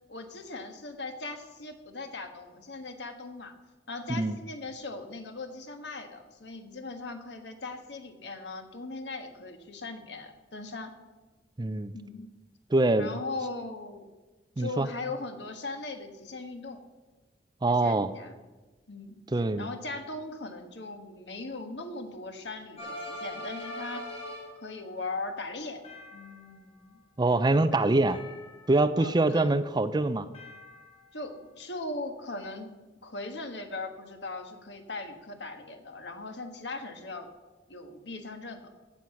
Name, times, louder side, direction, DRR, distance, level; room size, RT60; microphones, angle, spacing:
voice 1, 0.1-3.5 3.9-10.9 11.9-12.3 13.0-14.1 14.6-16.8 17.7-18.4 18.9-19.2 19.6-24.0 24.6-25.8 26.1-27.0 27.7-27.8 29.0-29.5 31.1-32.7 33.0-37.3 37.7-38.7, left 3 dB, 70° left, 6 dB, 1.5 m, -39 dB
voice 2, 11.6-11.9 12.7-13.2 14.6-14.9 17.6-18.1 19.3-19.7 27.2-28.2 28.7-30.3, right 2 dB, 25° right, 13 dB, 0.5 m, -24 dB
sound 1, 22.8-24.7 25.8-26.7 28.1-29.0 30.3-31.2, left 1 dB, 35° left, 3.8 m, -42 dB
16.0 x 7.8 x 5.8 m, 1.2 s
head